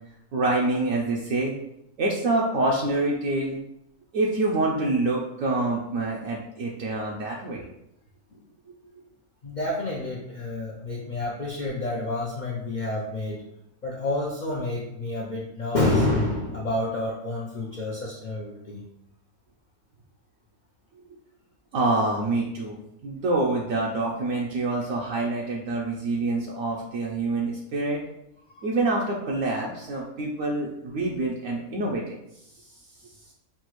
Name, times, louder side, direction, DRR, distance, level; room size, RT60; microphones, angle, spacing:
voice 1, 0.3-1.5 2.0-3.6 4.1-7.6 21.1-21.2 21.7-28.0 28.6-32.2 32.6-32.7, right 2 dB, 70° right, -2 dB, 1.0 m, -26 dB
voice 2, 9.4-13.4 13.8-18.8 28.5-28.7, left 2 dB, 60° left, -3 dB, 0.4 m, -28 dB
5.9 x 2.4 x 3.0 m, 0.80 s
omnidirectional pair, 1.5 m